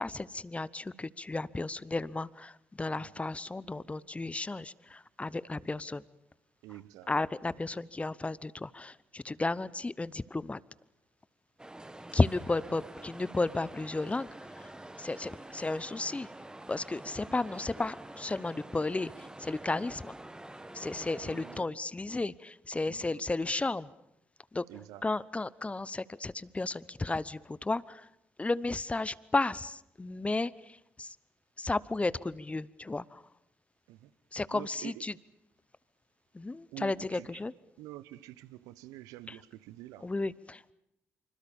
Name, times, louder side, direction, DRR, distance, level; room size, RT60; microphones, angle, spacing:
voice 1, 0.0-6.0 7.1-10.6 12.1-14.3 14.6-14.7 15.0-16.3 16.7-20.1 20.7-23.9 24.5-24.6 25.0-28.1 28.4-31.2 31.6-33.2 34.3-35.1 36.3-37.5 39.3-39.4 40.0-40.7, left 2 dB, 20° left, 0.9 m, -33 dB
voice 2, 2.9-3.3 6.6-7.1 21.2-21.8 22.8-23.2 24.7-25.1 33.9-34.1 34.5-35.0 36.7-37.4 37.8-40.1, right 15 dB, 75° right, 0.9 m, -48 dB
sound 1, 11.6-21.6, right 1 dB, 15° right, 1.7 m, -47 dB
26.0 x 25.0 x 7.2 m
hypercardioid pair, 45°, 6 cm